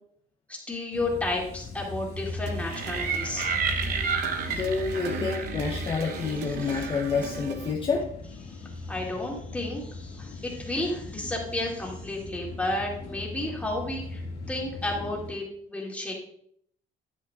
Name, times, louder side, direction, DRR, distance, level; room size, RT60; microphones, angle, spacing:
voice 1, 0.7-3.6 6.7-6.9 8.5-16.1, left 2 dB, 10° left, -2 dB, 2.3 m, -32 dB
sound 1, 0.9-15.3, left 3 dB, 75° left, 2.4 m, -39 dB
sound 2, 2.4-7.7, right 6 dB, 85° right, 0.7 m, -40 dB
sound 3, 2.7-7.5, right 5 dB, 55° right, 0.8 m, -32 dB
voice 2, 4.5-8.1, left 5 dB, 30° left, 1 dB, 0.8 m, -28 dB
9.2 x 8.4 x 2.4 m, 0.66 s
cardioid pair, 110°, 17 cm